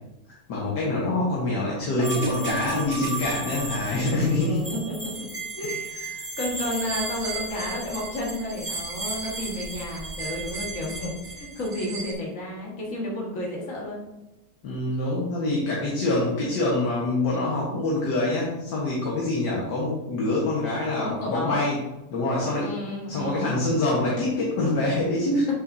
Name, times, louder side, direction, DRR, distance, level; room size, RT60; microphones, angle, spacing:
voice 1, 0.5-4.7 6.1-6.2 14.6-21.8 22.1-22.7 23.1-25.5, left 2 dB, 80° left, -4 dB, 2.0 m, -25 dB
sound 1, 2.0-12.1, right 3 dB, 25° right, 2.0 m, -34 dB
voice 2, 3.9-5.3 5.6-6.0 6.4-14.0 21.0-21.7 22.2-22.3 22.6-23.6, left 1 dB, 50° left, -4 dB, 2.1 m, -32 dB
8.4 x 6.4 x 2.7 m, 0.97 s
omnidirectional pair, 1.8 m